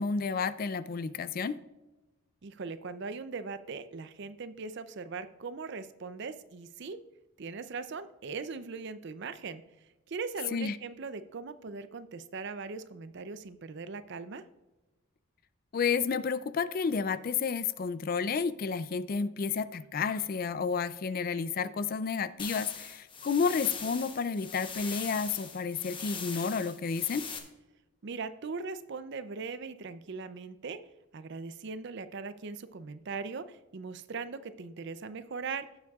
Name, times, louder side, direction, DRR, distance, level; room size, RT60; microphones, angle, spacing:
voice 1, 0.0-1.6 10.5-10.8 15.7-27.2, left 5 dB, 40° left, 15 dB, 0.3 m, -31 dB
voice 2, 2.4-7.0 7.4-9.6 10.1-14.4 28.0-30.8 31.1-35.7, right 4 dB, 50° right, 13 dB, 0.5 m, -40 dB
sound 1, 22.4-27.4, left 5 dB, 25° left, 0.9 m, -41 dB
17.0 x 7.2 x 2.4 m, 1.1 s
head